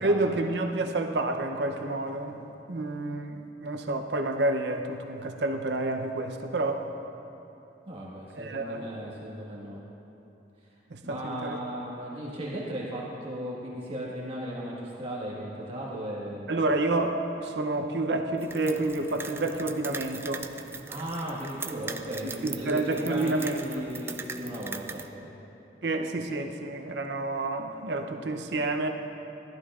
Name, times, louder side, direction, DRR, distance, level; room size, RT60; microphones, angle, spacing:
voice 1, 0.0-6.9 8.4-8.9 10.9-11.6 16.5-20.5 22.2-23.6 25.8-28.9, right 2 dB, 70° right, 5 dB, 0.7 m, -29 dB
voice 2, 7.8-9.8 11.0-16.6 20.9-25.3, right 1 dB, 30° right, -5 dB, 1.5 m, -36 dB
sound 1, 18.4-25.1, right 4 dB, 15° right, 0.3 m, -40 dB
14.0 x 12.0 x 2.4 m, 3.0 s
head